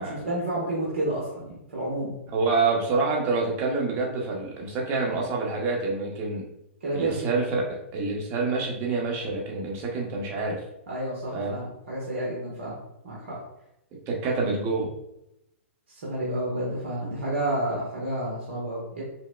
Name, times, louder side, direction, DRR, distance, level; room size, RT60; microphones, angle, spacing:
voice 1, 0.0-2.2 6.8-7.2 10.9-12.8 13.0-13.4 16.0-19.0, right 1 dB, 70° right, -6 dB, 1.1 m, -30 dB
voice 2, 2.3-6.5 6.9-10.6 11.3-11.6 14.1-14.9, right 3 dB, 30° right, -1 dB, 0.9 m, -27 dB
5.6 x 2.0 x 2.2 m, 0.86 s
hypercardioid pair, 125°, 7 cm